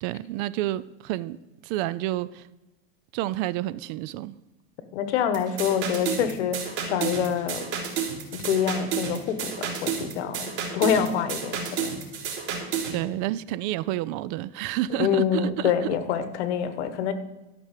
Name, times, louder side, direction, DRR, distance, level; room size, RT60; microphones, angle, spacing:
voice 1, 0.0-2.5 3.1-4.3 12.9-16.0, right 15 dB, 45° right, 0.4 m, -30 dB
voice 2, 4.9-7.7 8.3-12.0 14.9-17.1, left 8 dB, 75° left, 1.4 m, -26 dB
sound 1, 5.3-13.0, right 7 dB, 85° right, 3.8 m, -31 dB
13.0 x 6.0 x 7.4 m
supercardioid pair, 150°, 34 cm